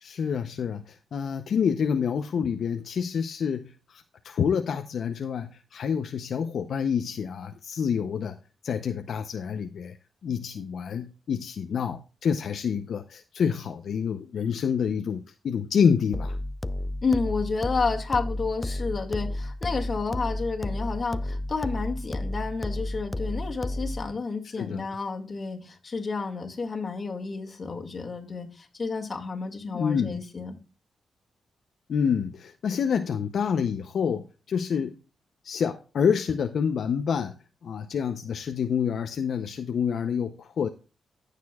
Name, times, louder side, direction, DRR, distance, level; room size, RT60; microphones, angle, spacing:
voice 1, 0.0-8.4 8.6-10.0 10.2-16.4 24.6-24.9 29.7-30.2 31.9-35.0 35.4-37.3 37.6-40.7, left 7 dB, 70° left, 0.6 m, -27 dB
sound 1, 16.1-24.1, left 1 dB, 15° left, 0.4 m, -32 dB
voice 2, 17.0-30.6, left 4 dB, 35° left, 1.9 m, -30 dB
15.5 x 6.7 x 2.3 m
cardioid pair, 115°, 0 cm